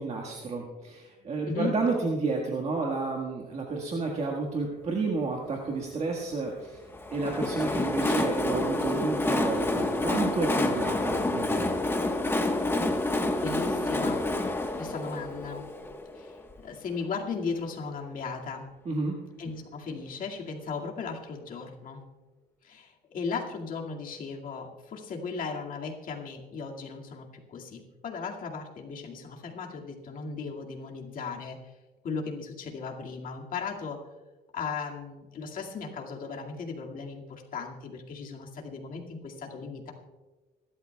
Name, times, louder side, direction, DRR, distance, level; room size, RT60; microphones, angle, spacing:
voice 1, 0.0-6.8 7.1-11.7 18.8-19.2, right 3 dB, 40° right, 0 dB, 1.6 m, -31 dB
Train, 6.9-16.6, left 2 dB, 15° left, 1.2 m, -28 dB
voice 2, 13.4-14.2 14.8-15.7 16.1-18.7 19.4-22.0 22.6-31.7 32.0-34.0 34.5-39.9, left 5 dB, 55° left, 0 dB, 2.2 m, -36 dB
26.0 x 12.0 x 2.3 m, 1.3 s
cardioid pair, 110°, 17 cm